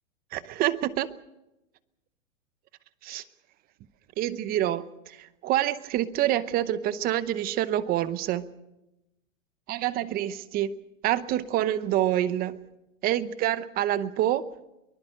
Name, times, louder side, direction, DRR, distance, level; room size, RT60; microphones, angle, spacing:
voice 1, 0.3-1.1 3.0-3.2 4.2-8.5 9.7-10.7 11.0-12.6 13.0-14.4, right 13 dB, 25° right, 16 dB, 0.8 m, -27 dB
24.0 x 20.0 x 6.5 m, 0.92 s
hypercardioid pair, 145°, 39 cm